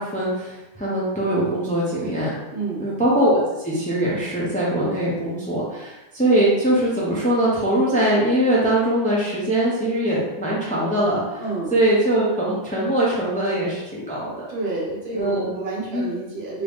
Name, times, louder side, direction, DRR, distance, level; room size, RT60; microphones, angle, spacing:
voice 1, 0.0-2.4 2.8-11.4 11.7-14.4 15.1-15.5 15.9-16.1, right 1 dB, 10° left, -7 dB, 0.6 m, -22 dB
voice 2, 2.5-2.9 11.4-11.7 14.5-16.6, right 3 dB, 60° right, -4 dB, 1.0 m, -29 dB
2.9 x 2.7 x 3.4 m, 1.0 s
omnidirectional pair, 1.3 m